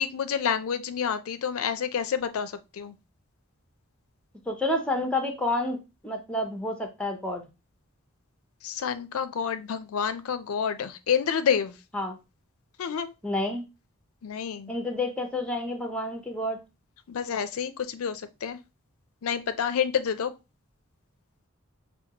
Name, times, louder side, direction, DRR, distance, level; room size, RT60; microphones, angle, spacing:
voice 1, 0.0-2.9 8.6-11.7 12.8-13.1 14.2-14.7 17.1-18.6 19.2-20.3, left 7 dB, 85° left, 11 dB, 0.4 m, -28 dB
voice 2, 4.5-7.4 11.9-12.2 13.2-13.6 14.7-16.6, left 1 dB, 5° left, 4 dB, 0.5 m, -29 dB
5.8 x 2.2 x 2.8 m, 0.27 s
head